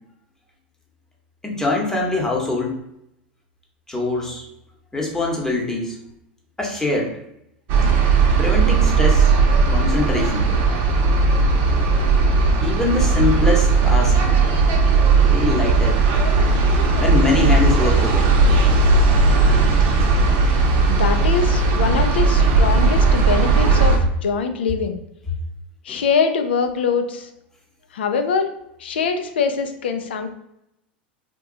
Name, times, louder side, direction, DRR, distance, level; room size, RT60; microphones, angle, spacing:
voice 1, 1.4-2.8 3.9-4.4 4.9-6.0 6.6-7.1 8.4-9.3 9.7-10.5 12.6-14.1 15.3-16.0 17.0-18.4 25.9-26.0, left 2 dB, 10° left, -1 dB, 0.9 m, -23 dB
sound 1, 7.7-24.0, right 4 dB, 55° right, 0.7 m, -16 dB
voice 2, 20.9-25.0 25.8-27.3 27.9-28.5 28.8-30.3, left 5 dB, 85° left, 7 dB, 0.4 m, -23 dB
2.8 x 2.2 x 3.7 m, 0.80 s
hypercardioid pair, 100°, 6 cm